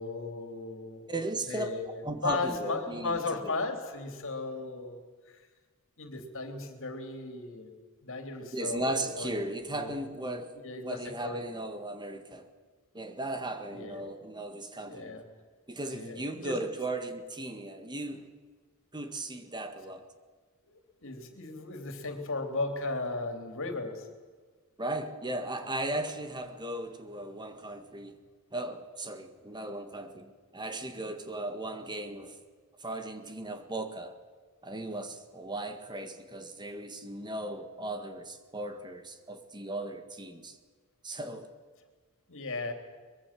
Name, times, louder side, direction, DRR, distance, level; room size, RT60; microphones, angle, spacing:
voice 1, 0.0-1.1 1.5-5.0 5.3-5.4 6.0-7.7 8.0-9.3 9.7-11.4 13.7-14.1 14.9-15.2 15.9-16.5 20.6-24.1 42.3-42.7, left 3 dB, 65° left, 3.5 m, -36 dB
voice 2, 1.1-1.7 2.0-3.6 8.5-12.5 12.9-15.2 15.7-18.3 18.9-20.1 24.8-28.2 28.5-32.4 32.8-34.2 34.6-40.6 41.0-41.5, right 1 dB, 20° right, 1.8 m, -37 dB
23.5 x 22.0 x 7.7 m
head